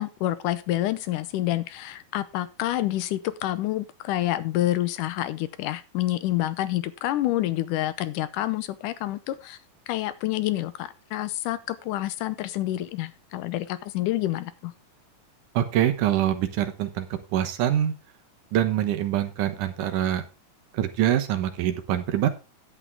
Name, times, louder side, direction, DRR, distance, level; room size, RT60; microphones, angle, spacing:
voice 1, 0.0-9.6 9.9-14.7, left 15 dB, 85° left, 14 dB, 2.3 m, -28 dB
voice 2, 15.5-17.1 17.3-17.9 18.5-20.2 20.7-22.3, right 11 dB, 80° right, 7 dB, 2.6 m, -24 dB
11.0 x 8.6 x 3.6 m, 0.29 s
omnidirectional pair, 3.7 m